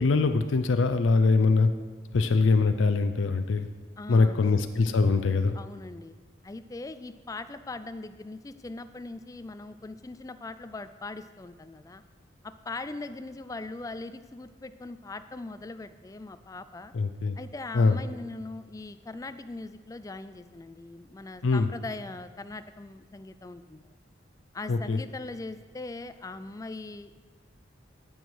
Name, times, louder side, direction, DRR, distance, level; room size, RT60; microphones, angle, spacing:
voice 1, 0.0-1.7 2.1-3.7 4.1-5.6 16.9-17.4 17.7-18.0 21.4-21.7 24.7-25.0, left 3 dB, 85° left, 8 dB, 0.5 m, -23 dB
voice 2, 4.0-4.5 5.5-6.2 6.4-12.0 12.4-16.9 17.4-23.9 24.5-27.2, left 2 dB, 20° left, 12 dB, 0.3 m, -40 dB
14.0 x 6.2 x 4.7 m, 1.4 s
head